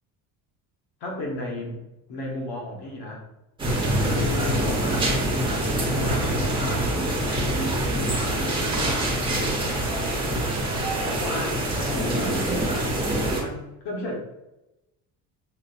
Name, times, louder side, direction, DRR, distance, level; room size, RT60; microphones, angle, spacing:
voice 1, 1.0-3.2 4.0-5.2 5.8-7.0 7.2-10.6 11.0-12.5 13.4-14.2, left 1 dB, 75° left, -1 dB, 1.2 m, -35 dB
sound 1, 3.6-13.4, right 1 dB, 10° right, 1.0 m, -25 dB
6.2 x 2.5 x 2.3 m, 0.94 s
cardioid pair, 140°, 40 cm